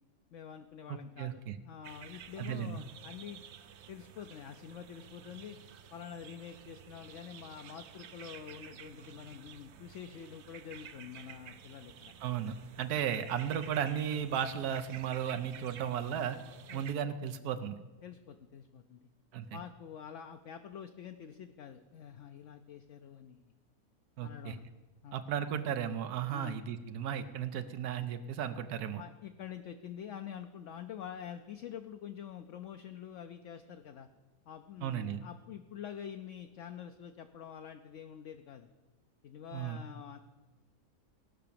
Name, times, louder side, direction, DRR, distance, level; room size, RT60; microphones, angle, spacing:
voice 1, 0.3-3.4 3.9-5.6 5.9-12.1 14.6-14.7 16.7-16.9 18.0-19.1 19.5-23.4 24.2-24.7 25.0-25.2 26.3-26.6 29.0-34.1 34.5-38.7 39.2-40.2, left 8 dB, 65° left, 7 dB, 0.8 m, -47 dB
voice 2, 0.9-1.6 2.4-2.8 12.2-16.4 16.7-17.8 19.3-19.6 24.2-24.6 25.1-29.0 34.8-35.2 39.5-39.8, right 9 dB, 85° right, 9 dB, 1.2 m, -35 dB
sound 1, 1.8-16.9, right 8 dB, 60° right, 0.8 m, -52 dB
17.5 x 5.8 x 6.8 m, 1.2 s
omnidirectional pair, 1.6 m